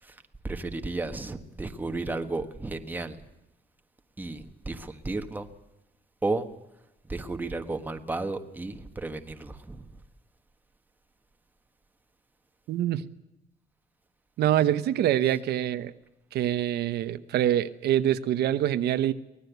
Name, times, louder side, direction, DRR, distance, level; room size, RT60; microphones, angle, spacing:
voice 1, 0.0-3.2 4.2-5.5 6.2-6.5 7.0-9.9, right 2 dB, 10° right, 1.4 m, -33 dB
voice 2, 12.7-13.0 14.4-15.9 16.3-19.1, right 11 dB, 85° right, 1.1 m, -25 dB
24.5 x 19.5 x 8.2 m
cardioid pair, 175°, 17 cm